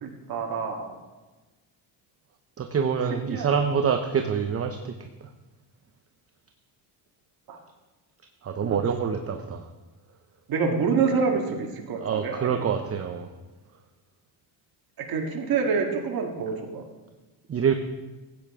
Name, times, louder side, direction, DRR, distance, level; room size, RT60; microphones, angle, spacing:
voice 1, 0.0-0.8 3.3-3.5 7.5-7.6 10.5-12.7 15.0-16.8, right 5 dB, 50° right, 1 dB, 1.8 m, -27 dB
voice 2, 2.6-5.3 8.4-9.7 12.0-13.3 17.5-17.7, right 7 dB, 30° right, 6 dB, 0.7 m, -26 dB
15.0 x 8.9 x 3.7 m, 1.2 s
cardioid pair, 105°, 47 cm